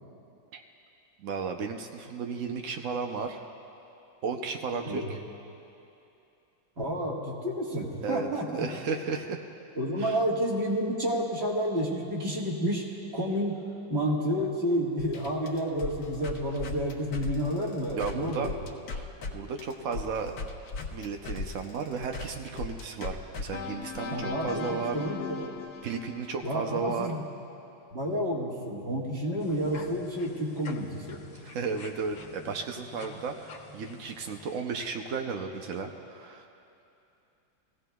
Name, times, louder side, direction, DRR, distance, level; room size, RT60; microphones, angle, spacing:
voice 1, 1.2-3.4 4.2-5.2 8.0-8.3 8.5-9.4 10.0-10.2 17.9-18.5 18.9-20.3 20.9-25.0 25.8-27.1 31.4-36.5, right 5 dB, 80° right, 4 dB, 0.7 m, -34 dB
voice 2, 6.8-8.7 9.8-12.8 13.1-13.6 13.9-18.5 24.1-25.5 26.4-27.2 27.9-31.2, equal, 35° right, -2 dB, 1.7 m, -30 dB
sound 1, 15.0-19.3 19.6-26.8, left 4 dB, 60° left, 1.2 m, -38 dB
sound 2, 29.4-34.6, left 4 dB, 90° left, 1.8 m, -48 dB
22.5 x 16.0 x 2.3 m, 2.8 s
omnidirectional pair, 2.1 m